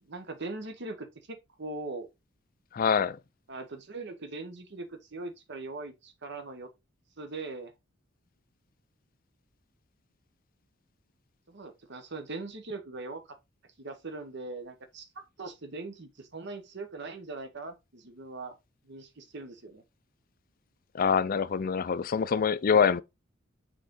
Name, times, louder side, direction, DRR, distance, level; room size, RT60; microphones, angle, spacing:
voice 1, 0.0-2.1 3.5-6.7 7.2-7.7 11.5-13.2 13.8-18.5 18.8-19.8, right 3 dB, 60° right, 1.2 m, -41 dB
voice 2, 2.7-3.2 20.9-23.0, left 6 dB, 45° left, 0.4 m, -25 dB
6.4 x 3.9 x 3.8 m
head